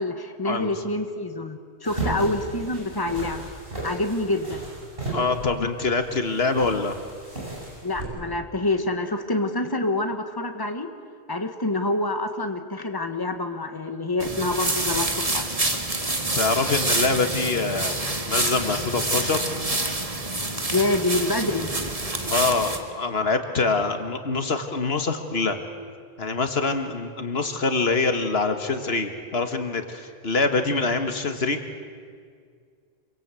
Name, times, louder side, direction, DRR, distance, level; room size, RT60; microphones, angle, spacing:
voice 1, 0.0-3.5 3.8-4.6 7.8-10.9 11.3-15.5 20.7-21.7, left 2 dB, 20° left, 6 dB, 1.7 m, -26 dB
sound 1, 1.8-8.0, right 2 dB, 65° right, 8.3 m, -34 dB
voice 2, 5.1-7.0 16.3-19.4 22.3-25.6 26.2-31.6, left 3 dB, 75° left, 7 dB, 1.9 m, -25 dB
sound 2, 14.2-22.8, right 2 dB, 35° right, 2.1 m, -27 dB
26.5 x 23.5 x 8.4 m, 2.1 s
omnidirectional pair, 1.1 m